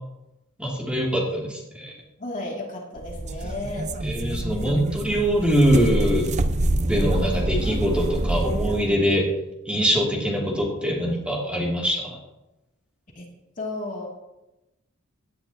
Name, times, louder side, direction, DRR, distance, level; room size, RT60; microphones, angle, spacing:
voice 1, 0.6-1.9 4.0-6.3 6.9-9.3 9.7-12.2, equal, 5° right, -3 dB, 2.6 m, -23 dB
voice 2, 2.2-3.9 13.1-13.3 13.6-14.1, left 2 dB, 40° left, -2 dB, 2.6 m, -33 dB
sound 1, 3.0-8.9, right 1 dB, 35° right, 0.6 m, -26 dB
17.5 x 10.5 x 2.9 m, 0.95 s
head